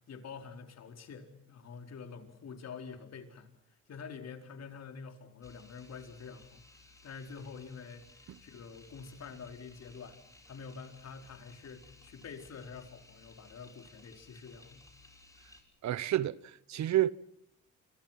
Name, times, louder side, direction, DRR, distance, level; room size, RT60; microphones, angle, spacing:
voice 1, 0.1-3.5 3.9-6.6 7.0-10.2 10.5-14.8, left 5 dB, 60° left, 4.5 m, -47 dB
sound 1, 5.4-15.6, left 2 dB, 10° left, 6.3 m, -59 dB
voice 2, 15.8-17.1, right 13 dB, 65° right, 1.0 m, -30 dB
27.5 x 25.5 x 5.9 m
cardioid pair, 90°, 30 cm